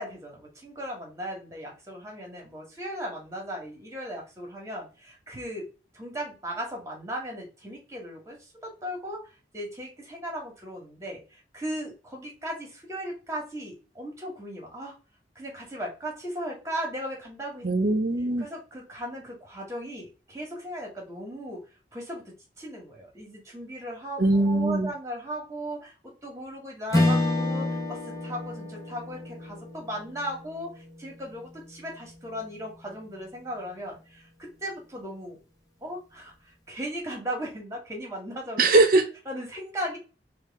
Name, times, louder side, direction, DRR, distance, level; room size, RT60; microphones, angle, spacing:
voice 1, 0.0-5.7 5.9-8.4 8.6-9.3 9.5-14.9 15.3-17.7 18.4-21.6 21.9-35.4 35.8-38.7 39.3-40.0, equal, 15° right, 0 dB, 1.6 m, -37 dB
voice 2, 17.6-18.5 24.2-24.9 38.6-39.1, right 2 dB, 50° right, 7 dB, 0.7 m, -21 dB
Strum, 26.9-31.5, left 2 dB, 20° left, 1.0 m, -29 dB
4.7 x 2.5 x 3.6 m, 0.32 s
head